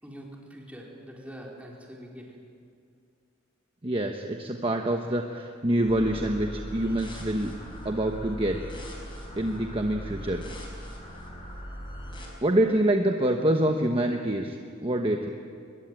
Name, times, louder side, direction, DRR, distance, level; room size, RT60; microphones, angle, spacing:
voice 1, 0.0-2.3, equal, 5° right, -2 dB, 4.4 m, -44 dB
voice 2, 3.8-7.5 7.8-8.6 9.4-10.4 12.4-15.3, right 1 dB, 25° right, 3 dB, 1.2 m, -26 dB
sound 1, 5.8-12.2, equal, 25° left, 5.8 m, -40 dB
23.0 x 22.0 x 9.0 m, 2.3 s
head